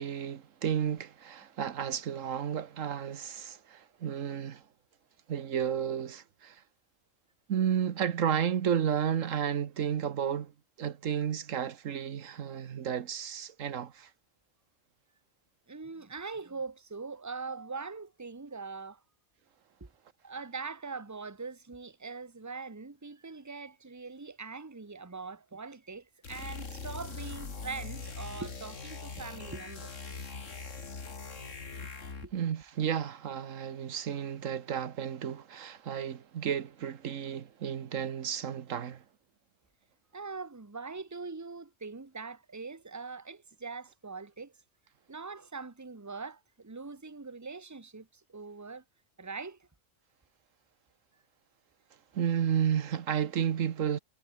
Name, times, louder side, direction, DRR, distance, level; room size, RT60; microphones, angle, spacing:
voice 1, 0.0-4.6 5.3-6.6 7.5-10.5 10.8-14.1 32.3-39.0 52.1-54.0, right 8 dB, 80° right, 1.4 m, -32 dB
voice 2, 15.7-19.0 19.8-19.9 20.2-29.9 32.2-32.3 40.1-44.5 45.1-48.8 49.2-49.6, right 4 dB, 15° right, 1.2 m, -42 dB
sound 1, 26.2-32.4, left 4 dB, 70° left, 2.7 m, -42 dB
omnidirectional pair, 1.3 m